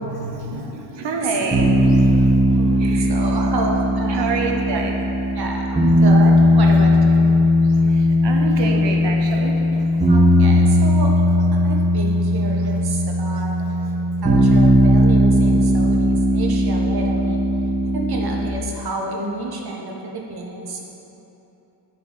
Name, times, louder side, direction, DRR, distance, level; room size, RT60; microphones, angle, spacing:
voice 1, 0.2-2.3 2.8-3.1 4.1-5.0 7.6-9.9 13.3-13.7, right 3 dB, 70° right, 2 dB, 1.1 m, -28 dB
sound 1, 1.5-18.5, left 1 dB, 15° right, 2.0 m, -17 dB
voice 2, 2.5-4.4 4.7-4.9 5.3-7.3 10.1-11.2 11.6-13.6 14.2-17.4 17.9-20.8, right 2 dB, 55° right, 0 dB, 1.3 m, -29 dB
9.8 x 4.9 x 5.1 m, 3.0 s
cardioid pair, 85°, 44 cm